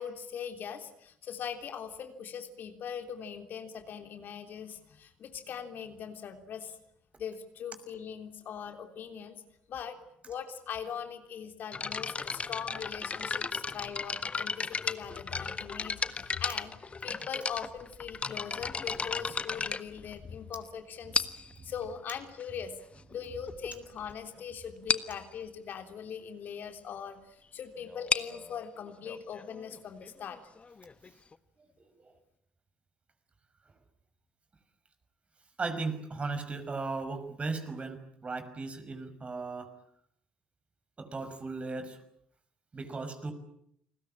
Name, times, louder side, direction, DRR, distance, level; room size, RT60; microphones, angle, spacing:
voice 1, 0.0-6.8 7.2-9.4 9.7-10.0 10.3-16.7 17.0-21.3 21.6-22.8 23.1-30.4, left 7 dB, 55° left, 6 dB, 3.4 m, -41 dB
sound 1, 11.7-20.5 21.1-21.6 22.4-22.5 23.1-23.2 23.5-23.7 24.0-24.1 24.4-24.5 24.9-25.2 27.9-31.3, left 4 dB, 30° left, 1.5 m, -35 dB
voice 2, 31.8-32.1 35.6-39.7 41.0-42.0 42.7-43.3, right 3 dB, 30° right, 9 dB, 5.9 m, -37 dB
29.5 x 21.0 x 8.8 m, 0.71 s
hypercardioid pair, 50°, 4 cm